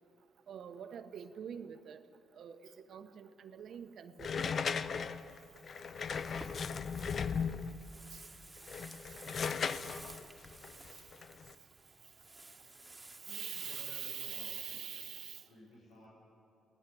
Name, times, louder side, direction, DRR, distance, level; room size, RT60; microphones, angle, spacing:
voice 1, 0.5-2.0 2.4-4.4 8.1-8.2 13.3-15.4, right 8 dB, 65° right, 9 dB, 1.2 m, -44 dB
sound 1, 4.2-7.9 8.6-11.5, left 6 dB, 50° left, 0.7 m, -37 dB
sound 2, 6.1-14.0, right 2 dB, 15° right, 2.0 m, -54 dB
voice 2, 13.2-15.1 15.5-16.1, left 1 dB, 85° left, -5 dB, 5.5 m, -56 dB
23.0 x 18.5 x 7.9 m, 2.9 s
cardioid pair, 90°, 0 cm